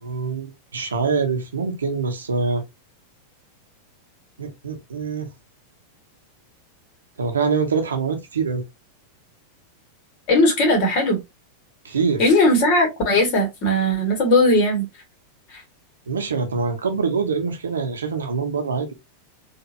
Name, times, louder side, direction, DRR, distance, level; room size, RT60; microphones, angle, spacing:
voice 1, 0.0-2.6 4.4-5.3 7.2-8.6 11.8-12.3 16.1-18.9, right 5 dB, 70° right, 0.9 m, -24 dB
voice 2, 10.3-11.2 12.2-14.9 15.5-15.6, left 1 dB, 45° left, 2.2 m, -18 dB
4.3 x 2.8 x 2.8 m
figure-of-eight pair, 90°, 0 cm